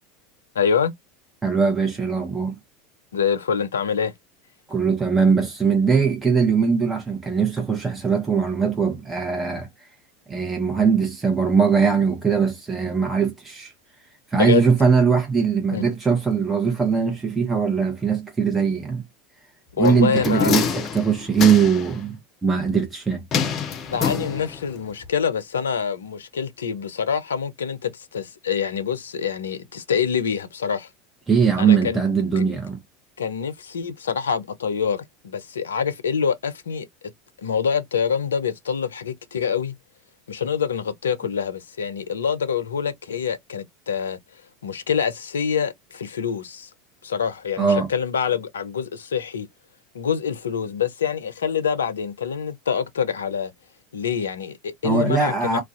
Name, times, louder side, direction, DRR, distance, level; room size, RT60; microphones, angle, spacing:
voice 1, 0.5-0.9 3.1-4.1 14.3-14.7 15.7-15.9 19.8-20.6 23.9-30.9 31.6-32.0 32.4-32.5 33.2-36.9 37.4-39.7 40.3-44.2 44.6-46.7 47.0-49.5 49.9-53.5 53.9-55.6, left 7 dB, 80° left, 0.5 m, -25 dB
voice 2, 1.4-2.5 4.7-9.9 10.3-13.7 14.3-19.0 19.8-23.2 31.3-32.8 47.6-47.9 54.8-55.6, right 6 dB, 15° right, 0.8 m, -21 dB
sound 1, 19.8-21.9 23.3-24.7 25.0-25.1, left 6 dB, 40° left, 0.6 m, -26 dB
2.3 x 2.2 x 2.5 m
hypercardioid pair, 80°, 0 cm